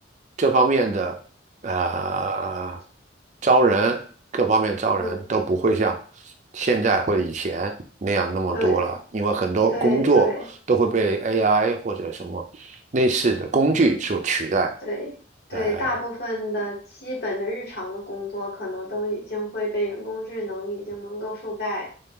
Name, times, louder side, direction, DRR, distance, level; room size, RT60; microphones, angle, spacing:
voice 1, 0.4-1.2 1.6-2.8 3.4-4.0 4.3-6.0 6.5-7.7 8.0-10.3 10.7-14.8 15.5-15.6, right 3 dB, 40° right, 4 dB, 0.5 m, -22 dB
voice 2, 8.5-8.9 9.7-10.5 14.8-15.1 15.5-21.9, equal, 55° left, -1 dB, 1.2 m, -29 dB
3.7 x 2.8 x 3.6 m, 0.41 s
head